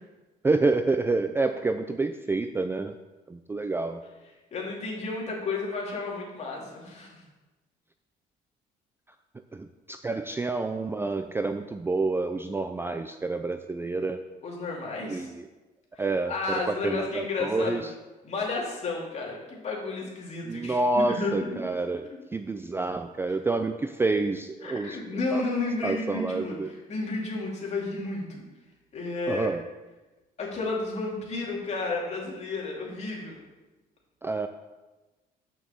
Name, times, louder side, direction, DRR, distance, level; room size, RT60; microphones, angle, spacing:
voice 1, 0.4-3.0 3.3-4.0 9.5-14.2 15.1-15.4 16.0-17.9 20.5-25.0 25.3-25.4 25.8-26.7 29.3-29.6 34.2-34.5, right 3 dB, 15° right, 8 dB, 0.4 m, -28 dB
voice 2, 4.5-7.2 14.4-15.3 15.9-17.8 18.2-21.7 22.1-22.2 23.3-23.4 24.6-28.4 28.9-29.5 30.4-33.4, left 3 dB, 40° left, -3 dB, 2.9 m, -32 dB
6.2 x 6.1 x 7.0 m, 1.2 s
cardioid pair, 110°, 17 cm